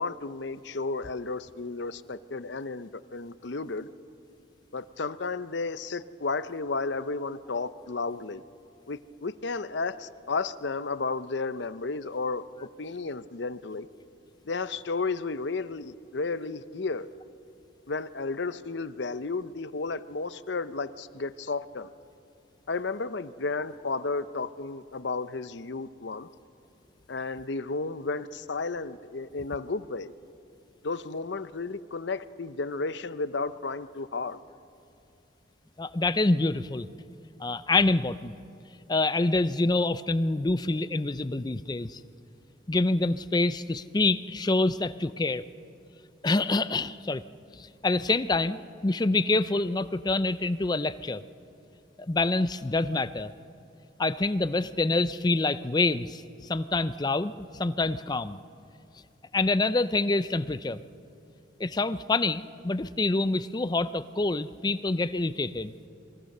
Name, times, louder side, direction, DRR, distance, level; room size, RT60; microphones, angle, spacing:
voice 1, 0.0-3.9 4.7-8.4 8.9-13.9 14.5-17.1 17.9-21.9 22.7-26.3 27.1-30.1 30.8-34.4, left 3 dB, 65° left, 0.7 m, -33 dB
voice 2, 35.8-36.9 37.4-38.3 38.9-42.0 42.7-45.4 46.2-47.2 47.6-51.2 52.1-53.3 54.0-57.3 57.6-58.4 59.3-60.8 61.6-65.7, left 2 dB, 20° left, 0.5 m, -26 dB
27.5 x 22.5 x 6.7 m
head